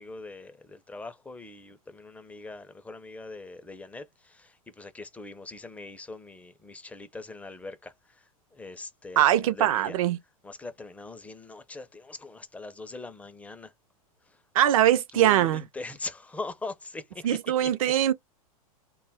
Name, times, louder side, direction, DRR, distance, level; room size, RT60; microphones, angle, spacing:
voice 1, 0.0-4.5 4.8-7.9 8.6-10.0 10.4-13.7 15.1-17.9, left 3 dB, 5° left, 0.4 m, -41 dB
voice 2, 9.2-10.2 14.5-15.6 17.2-18.1, right 12 dB, 70° right, 0.5 m, -22 dB
2.2 x 2.1 x 3.3 m
hypercardioid pair, 110°, 19 cm